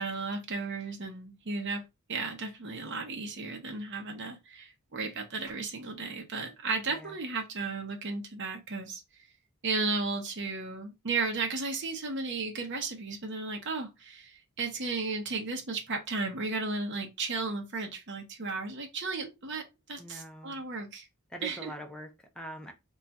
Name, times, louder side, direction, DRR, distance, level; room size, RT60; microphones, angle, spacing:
voice 1, 0.0-1.8 2.1-9.0 9.6-21.1 21.4-21.7, right 3 dB, 55° right, 0.7 m, -34 dB
voice 2, 6.9-7.2 20.0-20.6 21.3-22.7, right 1 dB, 5° left, 0.5 m, -44 dB
2.3 x 2.3 x 3.9 m
head